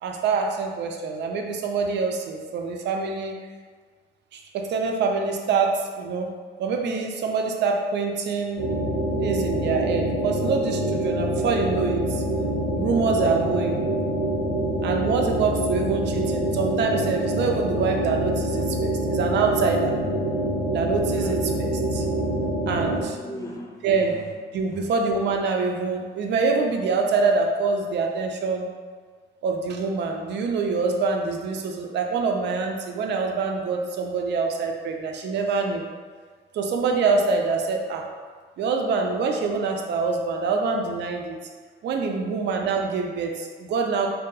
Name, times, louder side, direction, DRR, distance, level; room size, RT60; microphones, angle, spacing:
voice 1, 0.0-3.4 4.3-6.3 6.6-8.6 9.2-12.2 12.8-13.8 14.8-19.9 20.7-22.0 22.7-23.2 23.8-24.2 24.5-28.7 29.4-35.8 36.5-38.0 38.6-41.4 41.8-44.1, right 4 dB, 60° right, 2 dB, 0.4 m, -25 dB
sound 1, 8.6-23.0, right 1 dB, 80° left, 1.0 m, -26 dB
voice 2, 21.2-21.6 21.9-22.5 22.9-24.0, equal, 15° left, -1 dB, 0.4 m, -37 dB
2.6 x 2.3 x 2.3 m, 1.5 s
cardioid pair, 90°, 20 cm